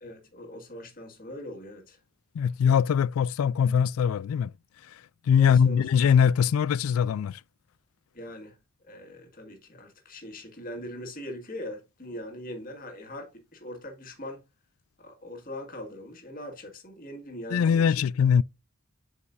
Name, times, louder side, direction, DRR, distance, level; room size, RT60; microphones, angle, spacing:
voice 1, 0.0-2.0 5.4-6.1 8.1-8.6 8.8-14.4 15.0-18.0, left 1 dB, 40° left, 1.9 m, -41 dB
voice 2, 2.3-4.5 4.9-5.0 5.3-7.4 17.5-18.4, left 7 dB, 85° left, 0.3 m, -22 dB
8.0 x 5.4 x 2.6 m
head